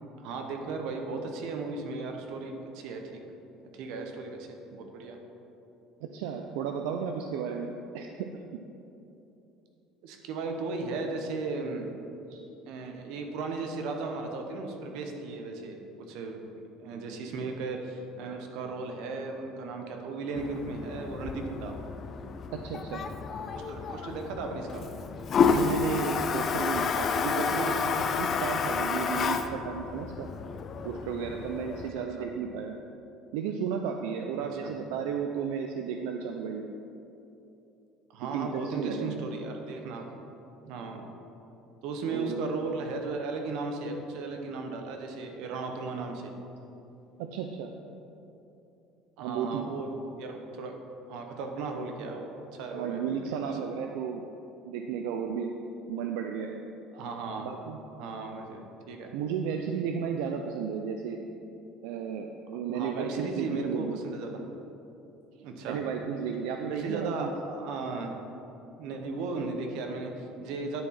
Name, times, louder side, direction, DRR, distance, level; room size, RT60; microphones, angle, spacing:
voice 1, 0.2-3.2 3.7-5.2 10.0-11.9 12.7-16.5 16.8-21.7 23.7-24.8 31.9-32.3 34.4-34.7 38.1-40.1 40.6-41.0 41.8-46.3 49.2-50.7 51.1-53.5 56.9-57.5 58.0-59.1 62.5-64.4 65.4-65.8 66.6-68.1 68.8-70.8, right 3 dB, 65° right, 3 dB, 0.9 m, -36 dB
voice 2, 6.0-8.6 12.3-12.4 22.5-23.1 25.4-30.3 30.8-32.8 33.3-36.7 38.2-39.2 42.1-42.4 47.2-47.7 49.2-49.7 52.7-54.2 54.6-55.5 55.9-56.6 57.4-57.8 59.1-61.2 61.8-64.0 65.7-67.3, right 7 dB, 85° right, 4 dB, 0.4 m, -33 dB
Toilet flush, 20.4-31.9, left 5 dB, 30° left, 0.3 m, -30 dB
10.0 x 4.6 x 4.3 m, 2.9 s
cardioid pair, 170°, 0 cm